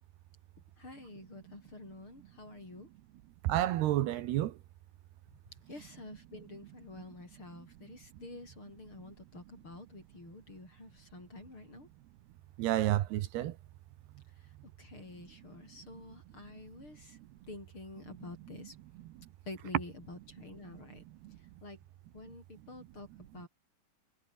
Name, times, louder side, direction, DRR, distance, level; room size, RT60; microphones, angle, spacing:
voice 1, 0.8-2.9 5.5-11.9 14.4-14.5 14.8-17.2 17.5-18.8 19.4-21.0 21.6-21.8 22.1-23.5, left 2 dB, 30° left, 8.4 m, -49 dB
voice 2, 3.4-4.5 12.6-13.5, right 14 dB, 80° right, 3.1 m, -29 dB
omnidirectional pair, 4.8 m